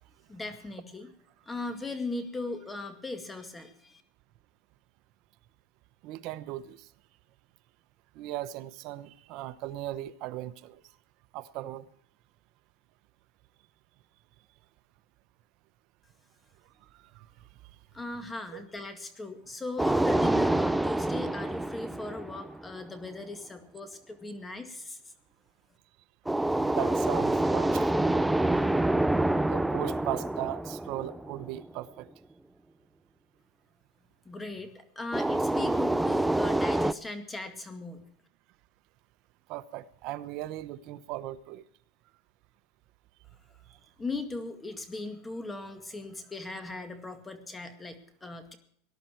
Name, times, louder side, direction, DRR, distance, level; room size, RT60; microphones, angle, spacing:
voice 1, 0.3-1.1 1.5-4.0 17.9-25.0 34.3-38.0 44.0-48.6, left 2 dB, 10° left, 8 dB, 2.1 m, -38 dB
voice 2, 6.0-6.9 8.1-10.8 11.3-11.9 16.9-17.3 18.5-18.6 26.6-27.9 28.7-28.8 29.5-32.1 39.5-41.6, right 14 dB, 50° right, 13 dB, 0.9 m, -37 dB
sound 1, 19.8-22.9 26.3-31.6 35.1-36.9, right 1 dB, 5° right, 0.5 m, -27 dB
19.5 x 11.5 x 4.6 m, 0.65 s
supercardioid pair, 135°, 0 cm